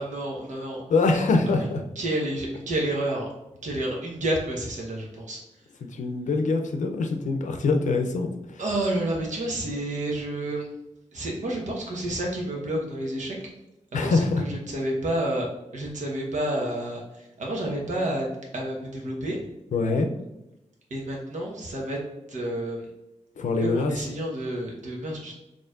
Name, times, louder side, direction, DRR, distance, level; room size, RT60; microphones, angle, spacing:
voice 1, 0.0-0.8 1.6-1.7 1.9-3.3 3.6-5.4 8.6-10.7 11.1-13.4 13.9-19.4 20.9-22.0 22.3-22.9 23.6-25.3, right 1 dB, 85° right, -1 dB, 1.1 m, -30 dB
voice 2, 0.9-1.8 5.9-8.6 13.9-14.5 19.7-20.1 23.4-23.9, left 3 dB, 85° left, 4 dB, 0.5 m, -24 dB
4.4 x 3.0 x 2.4 m, 0.94 s
wide cardioid pair, 140°, 12 cm